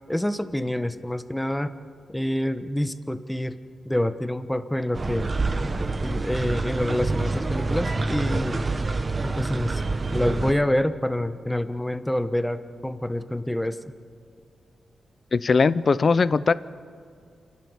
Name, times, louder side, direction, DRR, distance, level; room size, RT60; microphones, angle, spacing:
voice 1, 0.1-1.7 2.1-3.5 3.8-5.3 6.0-8.6 9.2-9.8 10.1-13.9, left 1 dB, 10° left, 11 dB, 1.1 m, -27 dB
sound 1, 4.9-10.5, right 3 dB, 40° right, 1.2 m, -27 dB
voice 2, 15.3-16.5, left 4 dB, 50° left, 17 dB, 0.6 m, -20 dB
28.5 x 12.0 x 8.2 m, 2.2 s
cardioid pair, 70°, 0 cm